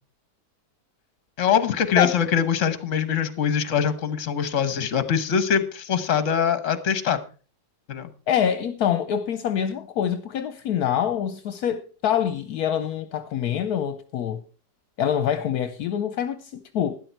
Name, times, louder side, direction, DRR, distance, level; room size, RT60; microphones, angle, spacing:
voice 1, 1.4-7.2 7.9-8.1, left 7 dB, 55° left, 1.3 m, -23 dB
voice 2, 8.3-14.4 15.0-16.9, left 9 dB, 75° left, 1.2 m, -25 dB
12.0 x 10.5 x 4.5 m
omnidirectional pair, 1.7 m